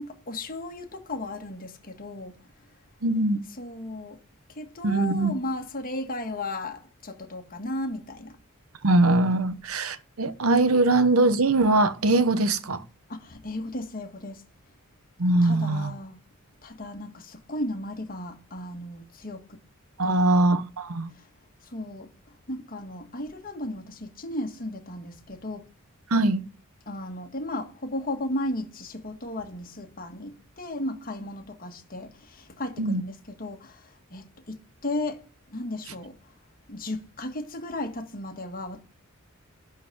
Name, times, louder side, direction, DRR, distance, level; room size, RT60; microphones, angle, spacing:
voice 1, 0.0-2.4 3.6-4.2 4.5-8.4 13.1-14.5 15.4-16.2 16.6-19.6 20.0-20.5 21.1-21.3 21.6-22.1 22.5-25.7 26.9-36.2 36.7-38.8, left 1 dB, 45° left, 1.7 m, -35 dB
voice 2, 3.0-3.4 4.8-5.3 8.8-12.8 15.2-15.9 20.0-21.1 26.1-26.4 32.8-33.0, right 2 dB, 90° right, 1.0 m, -22 dB
11.5 x 4.0 x 7.8 m
head